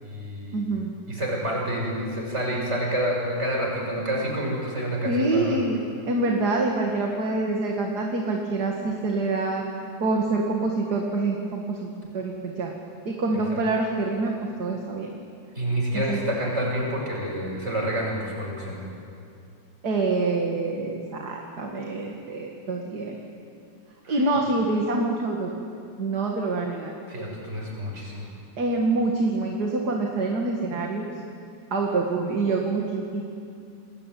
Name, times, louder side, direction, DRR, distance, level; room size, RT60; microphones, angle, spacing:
voice 1, 0.0-0.6 1.1-5.6 13.5-13.6 15.6-18.8 24.0-24.2 27.1-28.3, equal, 35° right, -2 dB, 7.2 m, -28 dB
voice 2, 0.5-0.9 5.0-5.8 6.1-9.6 10.0-12.7 13.1-15.1 15.9-16.2 19.8-23.2 24.1-25.5 26.0-26.9 28.6-31.1 31.7-33.2, right 3 dB, 55° right, 0 dB, 2.6 m, -26 dB
29.5 x 20.5 x 9.3 m, 2.5 s
omnidirectional pair, 2.1 m